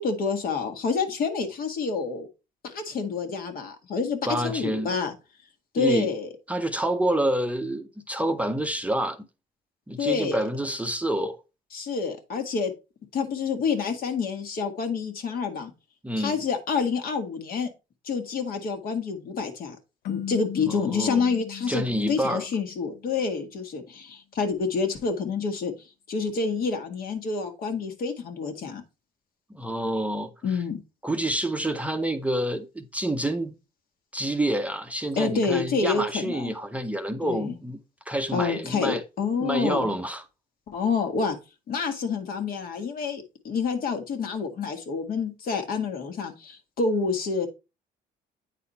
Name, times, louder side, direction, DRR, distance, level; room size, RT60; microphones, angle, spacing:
voice 1, 0.0-2.3 2.6-5.1 5.7-6.3 10.0-10.4 11.7-12.7 13.1-15.7 16.2-17.7 18.0-19.8 20.1-21.8 22.1-25.7 26.1-28.8 30.4-30.8 35.1-36.5 37.2-37.5 38.3-39.9 40.7-41.4 41.7-47.5, left 5 dB, 60° left, 1.6 m, -28 dB
voice 2, 4.3-4.9 5.8-6.1 6.5-9.2 9.9-11.4 16.0-16.4 20.7-21.2 21.7-22.5 29.5-30.3 31.0-33.5 34.1-37.8 38.1-39.0 39.3-40.2, right 1 dB, 10° right, 0.6 m, -28 dB
sound 1, 20.0-23.2, left 9 dB, 80° left, 0.8 m, -37 dB
8.7 x 4.2 x 4.1 m
cardioid pair, 110°, 17 cm